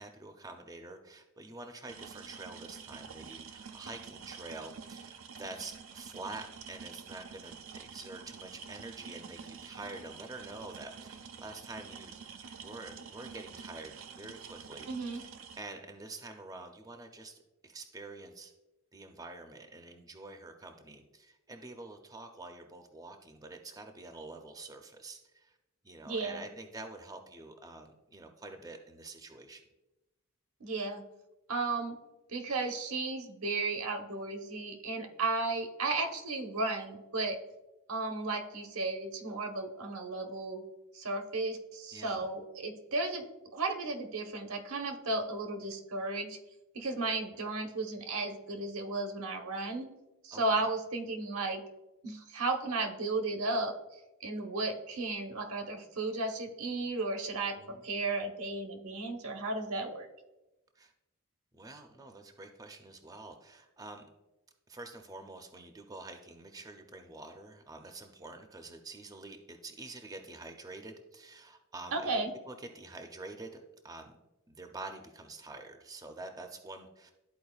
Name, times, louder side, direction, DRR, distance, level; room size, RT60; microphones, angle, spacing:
voice 1, 0.0-15.3 15.6-18.5 18.9-25.6 25.8-29.6 41.9-42.3 50.3-50.7 57.6-57.8 60.8-60.9 61.5-64.1 64.7-74.2 74.5-77.1, right 2 dB, 15° right, 5 dB, 0.5 m, -47 dB
sound 1, 1.9-15.6, right 6 dB, 70° right, 0.5 m, -48 dB
voice 2, 14.9-15.2 26.0-26.5 30.6-31.0 31.5-32.0 32.3-37.4 37.9-40.6 40.9-43.3 43.5-46.4 46.7-49.9 50.2-51.6 52.0-53.8 54.2-60.1 71.9-72.3, right 3 dB, 90° right, 4 dB, 1.0 m, -34 dB
12.5 x 4.5 x 2.3 m, 1.0 s
head